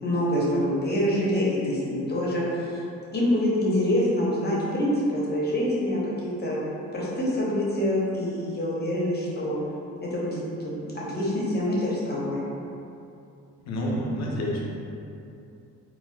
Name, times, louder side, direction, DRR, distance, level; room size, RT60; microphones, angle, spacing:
voice 1, 0.0-2.8 3.1-6.6 6.9-9.6 10.0-12.4, left 1 dB, 35° left, -6 dB, 0.8 m, -26 dB
voice 2, 13.6-14.6, equal, 60° left, -3 dB, 0.7 m, -28 dB
4.2 x 2.0 x 2.3 m, 2.6 s
cardioid pair, 90°, 30 cm